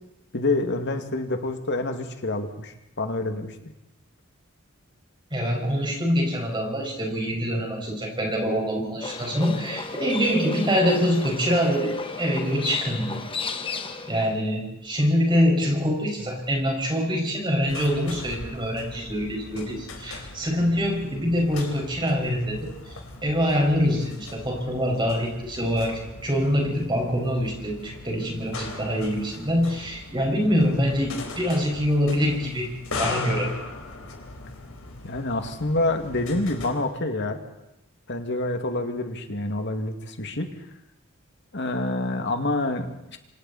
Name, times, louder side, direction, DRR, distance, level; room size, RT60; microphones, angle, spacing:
voice 1, 0.3-3.5 35.0-37.4 38.1-40.5 41.5-43.2, left 2 dB, 60° left, 5 dB, 2.3 m, -27 dB
voice 2, 5.3-13.2 14.1-22.7 23.2-32.7 33.0-33.5, equal, 25° right, 0 dB, 5.7 m, -25 dB
Livestock farm animals working animals, 9.0-14.3, left 4 dB, 25° left, 1.4 m, -33 dB
sound 1, 17.7-36.7, left 3 dB, 90° left, 4.1 m, -39 dB
27.0 x 25.5 x 4.3 m, 0.87 s
head